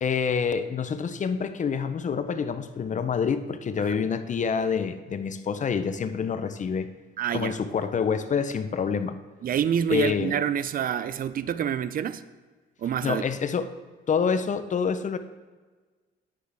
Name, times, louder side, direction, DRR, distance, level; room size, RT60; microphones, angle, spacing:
voice 1, 0.0-6.9 7.3-9.2 9.9-10.4 13.0-13.7 14.1-15.2, left 6 dB, 40° left, 10 dB, 0.5 m, -27 dB
voice 2, 7.2-7.6 9.4-12.2 12.8-13.2, right 9 dB, 45° right, 14 dB, 0.4 m, -27 dB
9.4 x 6.5 x 3.4 m, 1.4 s
cardioid pair, 90°, 20 cm